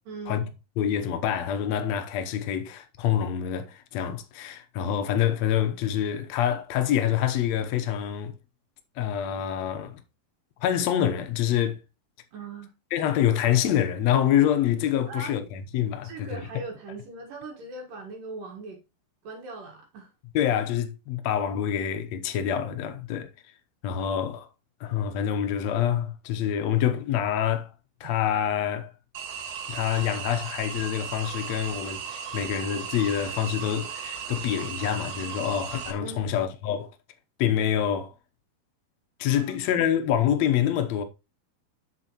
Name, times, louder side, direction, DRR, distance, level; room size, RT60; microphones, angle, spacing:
voice 1, 0.1-0.5 12.3-12.7 15.1-15.4 16.0-18.8 19.2-20.1 28.0-28.1 36.0-36.3 39.3-39.5, right 3 dB, 65° right, 3.2 m, -40 dB
voice 2, 0.8-8.4 9.0-10.0 10.6-11.8 12.9-16.4 20.3-23.3 23.8-24.5 24.8-27.7 28.0-28.9 29.7-36.9 37.4-38.1 39.2-41.0, left 10 dB, 75° left, 1.6 m, -26 dB
sound 1, 29.1-35.9, right 7 dB, 85° right, 3.3 m, -36 dB
8.0 x 7.3 x 3.0 m
omnidirectional pair, 4.3 m